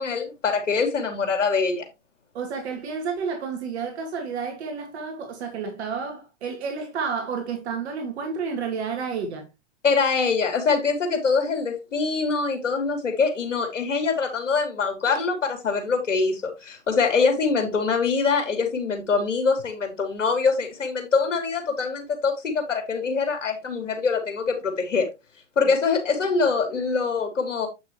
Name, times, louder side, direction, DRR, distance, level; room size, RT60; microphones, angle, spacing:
voice 1, 0.0-1.8 9.8-25.1 25.6-27.7, left 4 dB, 80° left, 3.6 m, -24 dB
voice 2, 2.3-9.5 25.6-25.7, right 5 dB, 60° right, 2.3 m, -30 dB
9.4 x 6.2 x 3.1 m
hypercardioid pair, 115°, 36 cm